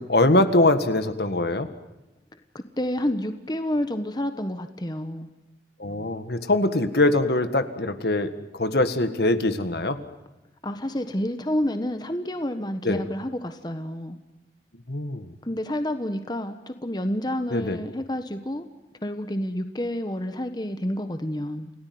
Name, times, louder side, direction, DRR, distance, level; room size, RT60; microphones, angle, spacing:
voice 1, 0.0-1.7 5.8-10.0 12.8-13.0 14.9-15.3 17.5-17.8, left 2 dB, 65° left, 10 dB, 1.8 m, -22 dB
voice 2, 2.5-5.3 10.6-14.2 15.4-18.7 19.0-21.7, left 1 dB, 25° left, 9 dB, 1.3 m, -29 dB
28.5 x 18.0 x 9.4 m, 1.0 s
head